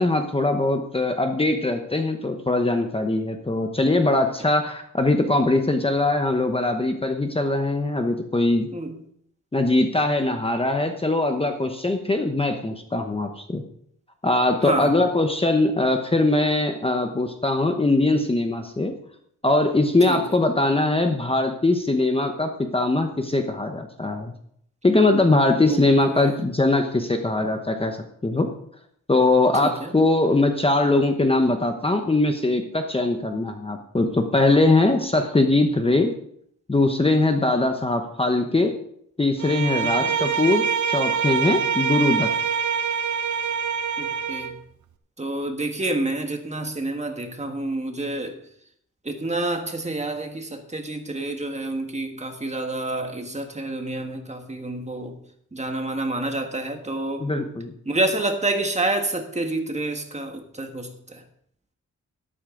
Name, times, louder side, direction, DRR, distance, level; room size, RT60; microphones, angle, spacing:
voice 1, 0.0-8.7 9.5-13.6 14.2-18.9 19.4-24.3 24.8-28.0 28.2-28.5 29.1-36.1 36.7-38.7 39.2-42.3 57.2-57.7, left 2 dB, 20° left, 5 dB, 1.0 m, -21 dB
voice 2, 14.6-14.9 20.1-20.3 25.7-25.8 26.1-26.4 29.6-29.9 40.0-40.2 44.0-44.6 45.2-48.3 49.0-55.2 55.5-57.3 57.8-61.2, right 2 dB, 20° right, 4 dB, 1.7 m, -28 dB
Bowed string instrument, 39.4-44.6, right 7 dB, 70° right, 1.0 m, -25 dB
12.5 x 12.5 x 3.9 m, 0.68 s
wide cardioid pair, 125°, 30 cm